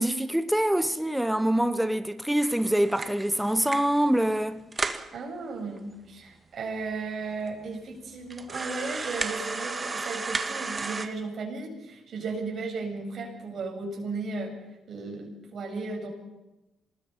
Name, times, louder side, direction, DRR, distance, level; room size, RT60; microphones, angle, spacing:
voice 1, 0.0-4.6, right 1 dB, 5° right, 1.0 m, -25 dB
sound 1, 2.4-4.0 4.4-4.5 4.7-5.1 5.8-5.9 6.1-6.2 6.9-7.0 7.5-7.6 8.3-11.1, right 3 dB, 25° right, 1.9 m, -33 dB
voice 2, 5.1-14.6 14.9-16.1, right 3 dB, 55° right, 7.7 m, -35 dB
27.0 x 20.0 x 5.6 m
cardioid pair, 90°, 0 cm